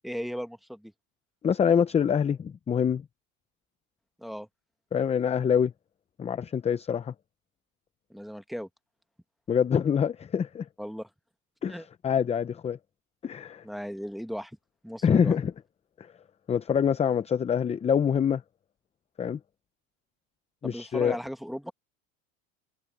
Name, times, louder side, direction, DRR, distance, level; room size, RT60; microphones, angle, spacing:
voice 1, 0.0-0.9 4.2-4.5 8.1-8.7 10.8-11.1 11.7-11.8 13.6-14.6 14.8-15.4 20.6-21.7, equal, ahead, 1.4 m, -36 dB
voice 2, 1.4-3.0 4.9-5.7 6.2-7.1 9.5-10.7 11.6-12.8 13.2-13.6 15.0-15.5 16.0-16.1 16.5-18.4 19.2-19.4 20.6-21.2, left 7 dB, 15° left, 0.6 m, -25 dB
supercardioid pair, 125°, 40 cm